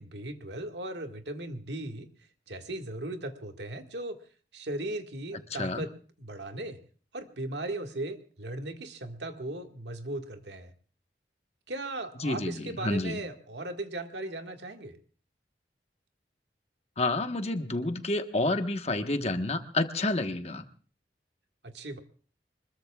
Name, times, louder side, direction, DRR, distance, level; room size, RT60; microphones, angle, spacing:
voice 1, 0.0-2.1 2.5-4.2 4.5-5.9 6.2-6.8 7.1-10.7 11.7-15.0 21.6-22.0, right 1 dB, 80° right, 5 dB, 1.8 m, -37 dB
voice 2, 5.5-5.9 12.2-13.2 17.0-20.7, left 2 dB, 35° left, 7 dB, 1.2 m, -29 dB
25.0 x 21.5 x 2.4 m, 0.42 s
head